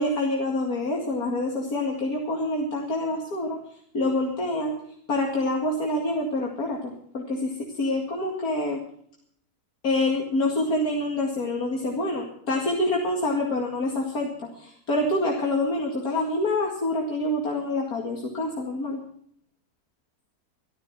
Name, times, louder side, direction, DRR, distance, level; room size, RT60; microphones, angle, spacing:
voice 1, 0.0-3.6 3.9-4.8 5.1-8.8 9.8-14.3 14.6-19.0, left 1 dB, 65° left, -1 dB, 2.7 m, -26 dB
14.5 x 13.0 x 6.0 m, 0.63 s
omnidirectional pair, 1.7 m